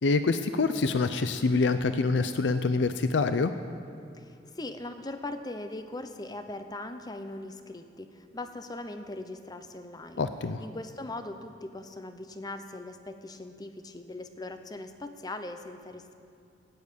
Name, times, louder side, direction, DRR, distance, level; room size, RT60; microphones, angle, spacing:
voice 1, 0.0-3.5 10.2-10.6, left 3 dB, 80° left, 10 dB, 0.5 m, -26 dB
voice 2, 4.1-10.3 10.6-16.1, left 2 dB, 20° left, 8 dB, 0.7 m, -40 dB
13.0 x 9.4 x 8.5 m, 2.5 s
head